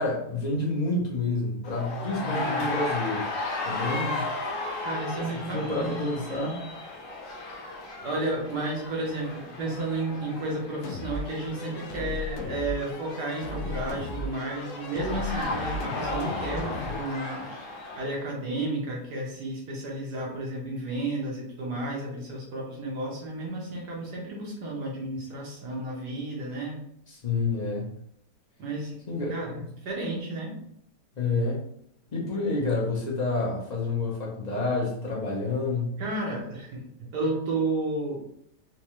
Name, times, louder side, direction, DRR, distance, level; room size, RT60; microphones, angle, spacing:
voice 1, 0.0-3.3 3.6-4.3 5.5-6.6 27.1-27.9 29.1-29.5 31.1-31.7 32.1-36.0, left 3 dB, 35° left, -3 dB, 0.7 m, -29 dB
sound 1, 1.6-18.2, left 2 dB, 55° left, 1.1 m, -35 dB
voice 2, 2.1-2.8 4.8-6.6 8.0-17.5 18.0-26.8 28.6-29.0 29.3-30.6 36.0-36.8 37.1-38.2, right 2 dB, 75° right, -2 dB, 1.6 m, -32 dB
sound 2, 10.8-17.0, left 2 dB, 75° left, 0.6 m, -36 dB
4.5 x 2.3 x 3.0 m, 0.70 s
omnidirectional pair, 1.8 m